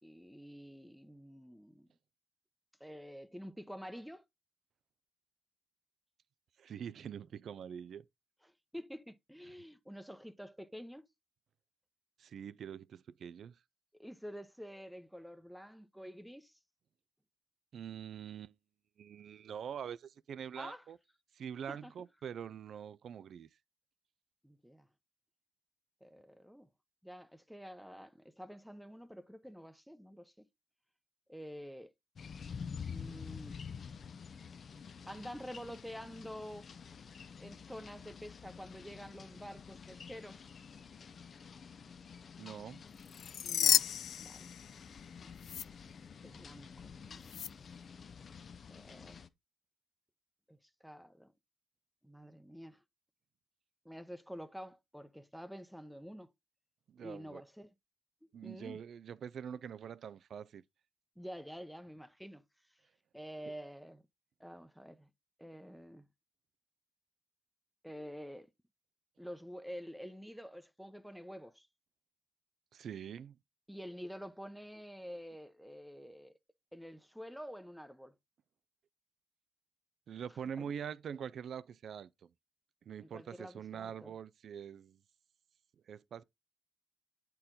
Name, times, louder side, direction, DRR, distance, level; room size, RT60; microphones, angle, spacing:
voice 1, 0.0-1.9 2.8-4.3 8.4-11.1 14.0-16.6 20.6-20.9 21.7-21.9 24.4-24.9 26.0-26.7 27.0-30.3 31.3-31.9 32.8-33.6 35.1-36.7 37.4-40.5 43.4-43.9 44.1-44.5 46.2-47.5 48.7-49.2 50.5-51.3 52.0-52.8 53.8-56.3 57.0-57.7 58.4-58.8 61.2-62.4 63.1-64.0 64.4-65.1 65.4-66.1 67.8-68.5 69.2-71.7 73.7-76.4 76.7-78.1 80.3-80.7 83.0-84.1, equal, ahead, 0.8 m, -48 dB
voice 2, 6.6-8.1 12.2-13.6 17.7-18.5 19.0-21.0 21.4-23.5 42.4-42.8 56.9-57.4 58.3-60.6 72.7-73.4 80.1-82.3 82.9-85.0 85.9-86.2, right 8 dB, 60° right, 0.5 m, -44 dB
sound 1, 32.2-49.3, left 6 dB, 50° left, 0.7 m, -49 dB
sound 2, 43.1-45.1 45.4-45.6 47.3-47.5, left 10 dB, 70° left, 0.4 m, -32 dB
8.5 x 4.5 x 3.8 m
cardioid pair, 90°, 0 cm